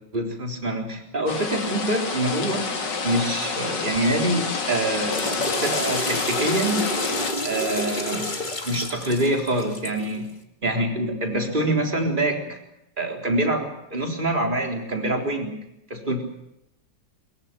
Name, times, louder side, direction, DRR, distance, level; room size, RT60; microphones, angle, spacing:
voice 1, 0.1-2.7 3.0-6.9 7.4-8.3 8.6-10.3 10.6-12.6 13.0-15.6 15.9-16.2, right 1 dB, 25° right, 3 dB, 4.0 m, -25 dB
sound 1, 1.3-7.3, left 4 dB, 70° left, 2.9 m, -29 dB
Water / Toilet flush, 4.8-10.1, left 1 dB, 25° left, 2.3 m, -29 dB
22.5 x 22.0 x 7.4 m, 0.83 s
omnidirectional pair, 2.0 m